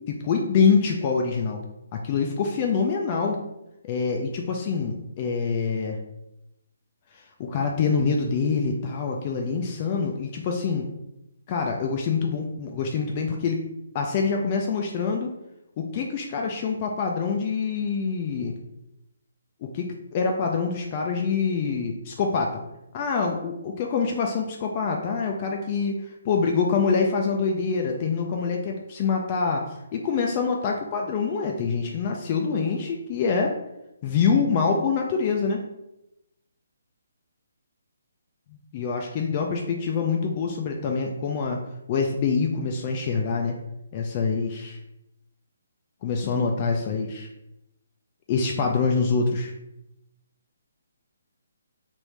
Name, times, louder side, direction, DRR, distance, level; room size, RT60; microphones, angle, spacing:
voice 1, 0.1-1.6 1.9-3.4 3.8-6.0 7.1-10.9 11.5-13.6 13.9-15.3 15.8-18.5 19.6-22.6 22.9-33.6 34.0-35.6 38.7-41.6 41.9-43.6 43.9-44.8 46.0-47.3 48.3-49.5, left 5 dB, 30° left, 1 dB, 0.3 m, -25 dB
3.1 x 2.5 x 3.2 m, 0.88 s
hypercardioid pair, 165°, 0 cm